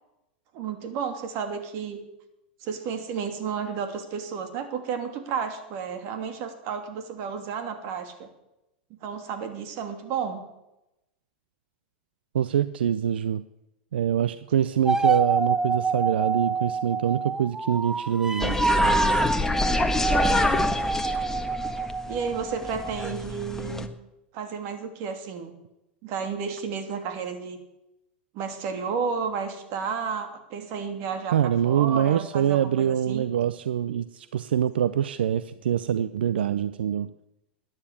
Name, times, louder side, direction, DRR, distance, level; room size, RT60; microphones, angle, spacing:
voice 1, 0.5-2.0 2.6-8.3 8.9-10.4 20.3-20.8 22.0-23.9 24.3-25.6 26.0-27.6 28.3-33.3, right 6 dB, 55° right, 7 dB, 2.8 m, -32 dB
voice 2, 12.3-13.4 13.9-18.7 31.3-37.1, right 9 dB, 85° right, 15 dB, 0.5 m, -25 dB
sound 1, 14.9-23.2, right 4 dB, 10° right, 0.6 m, -27 dB
sound 2, 18.4-23.9, left 2 dB, 10° left, 1.4 m, -27 dB
13.5 x 9.9 x 8.5 m, 0.91 s
hypercardioid pair, 105°, 5 cm